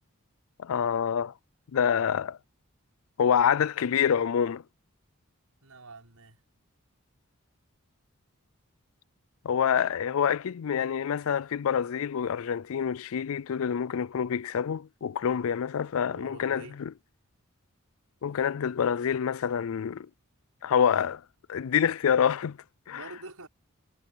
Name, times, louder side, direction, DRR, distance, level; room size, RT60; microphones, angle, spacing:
voice 1, 0.6-1.3 1.7-2.4 3.2-4.6 9.4-16.9 18.2-20.1 20.6-21.2 21.5-22.6 22.9-23.0, left 8 dB, 70° left, 0.4 m, -27 dB
voice 2, 5.6-6.4 15.2-15.5 16.1-16.8 22.9-23.5, right 2 dB, 85° right, 6.0 m, -46 dB
head